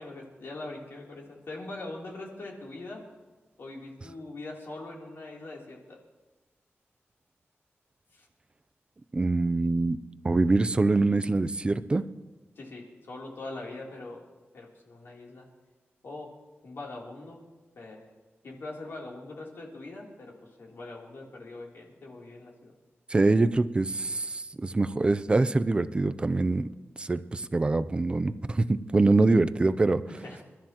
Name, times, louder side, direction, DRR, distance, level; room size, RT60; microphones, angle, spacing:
voice 1, 0.0-3.0 3.6-6.0 8.1-8.3 12.6-14.2 14.5-15.5 16.0-16.3 16.6-17.4 17.7-18.1 18.4-22.7 30.1-30.4, left 2 dB, 65° left, -2 dB, 3.1 m, -42 dB
voice 2, 9.1-10.0 10.2-12.1 23.1-26.7 27.0-30.0, right 3 dB, 25° right, 12 dB, 0.4 m, -24 dB
28.5 x 13.0 x 2.9 m, 1.2 s
wide cardioid pair, 175°, 4 cm